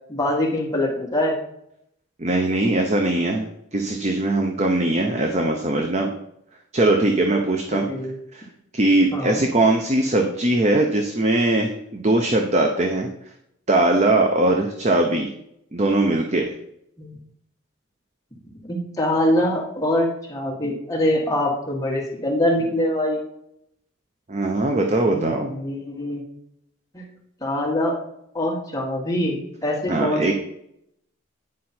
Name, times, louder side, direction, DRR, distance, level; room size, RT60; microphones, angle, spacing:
voice 1, 0.1-1.4 7.7-8.1 9.1-9.4 17.0-17.1 18.6-23.2 25.1-26.2 26.9-27.0 27.4-28.0 28.3-30.3, left 1 dB, 15° left, -2 dB, 1.6 m, -24 dB
voice 2, 2.2-6.1 6.7-7.9 8.3-8.4 8.7-13.1 13.7-15.3 15.7-16.5 24.3-25.5 29.9-30.3, right 2 dB, 35° right, 3 dB, 0.7 m, -20 dB
9.5 x 5.2 x 4.3 m, 0.76 s
head